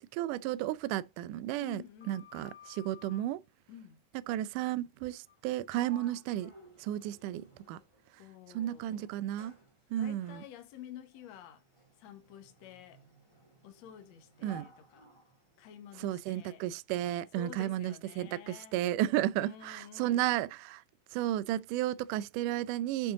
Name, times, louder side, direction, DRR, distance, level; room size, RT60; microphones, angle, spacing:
voice 1, 0.1-1.8 2.1-3.4 4.3-6.5 6.8-7.8 8.5-9.6 9.9-10.4 14.4-14.7 16.0-20.8 21.1-23.1, right 13 dB, 80° right, 2.1 m, -33 dB
voice 2, 1.6-2.3 3.7-4.0 8.2-9.2 10.0-11.6 12.0-13.0 13.6-15.1 15.6-16.6 17.3-18.8 19.3-20.3, left 10 dB, 60° left, 2.3 m, -50 dB
Sliding door, 1.8-3.3 5.2-5.4 5.7-8.1 8.8-16.2, left 1 dB, 10° left, 2.3 m, -57 dB
8.8 x 5.6 x 3.7 m
omnidirectional pair, 3.9 m